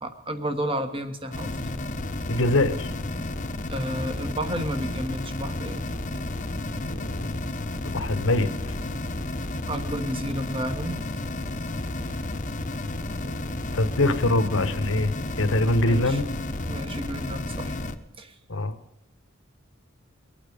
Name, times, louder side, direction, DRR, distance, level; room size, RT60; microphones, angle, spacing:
voice 1, 0.0-1.5 3.7-5.8 9.7-11.0 15.8-16.2 16.7-17.8 18.2-18.3, right 1 dB, 25° right, 8 dB, 1.4 m, -31 dB
sound 1, 1.3-17.9, left 2 dB, 40° left, 1.1 m, -32 dB
voice 2, 2.3-2.9 6.8-7.4 7.8-8.7 13.2-13.4 13.7-16.3 18.5-18.7, left 2 dB, 70° left, 9 dB, 1.3 m, -24 dB
23.5 x 9.0 x 5.2 m, 0.91 s
head